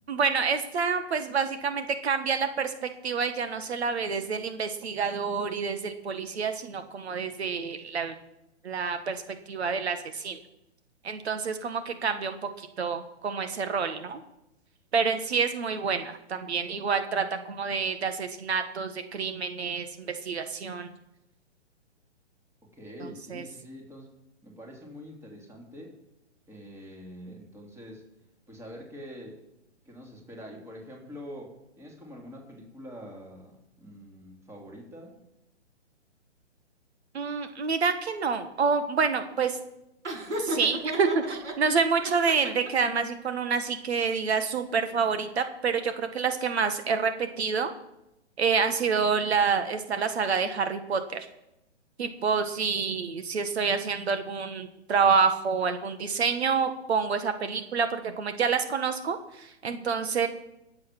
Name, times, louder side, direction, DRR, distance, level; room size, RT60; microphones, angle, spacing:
voice 1, 0.1-8.1 8.6-10.4 11.0-14.2 14.9-20.9 23.3-23.4 37.1-39.6 40.4-47.7 48.4-51.3 52.0-60.3, right 5 dB, 60° right, 8 dB, 1.6 m, -28 dB
voice 2, 22.7-24.1 24.4-26.0 26.5-28.1 28.5-29.4 29.8-35.2, equal, 5° right, 0 dB, 2.9 m, -45 dB
Laughter, 40.0-41.5 42.0-42.9, equal, 80° right, 6.0 m, -33 dB
18.5 x 7.8 x 6.0 m, 0.87 s
hypercardioid pair, 135°, 35 cm